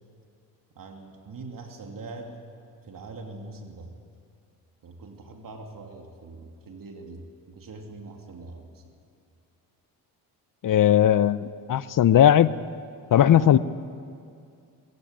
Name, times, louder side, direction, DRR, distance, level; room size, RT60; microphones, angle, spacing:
voice 1, 0.7-2.4 2.8-3.9 4.8-8.8 13.3-13.6, right 3 dB, 55° right, 3 dB, 2.8 m, -42 dB
voice 2, 10.6-12.5 13.1-13.6, left 10 dB, 50° left, 17 dB, 0.8 m, -18 dB
21.5 x 16.5 x 8.8 m, 2.3 s
supercardioid pair, 70°, 41 cm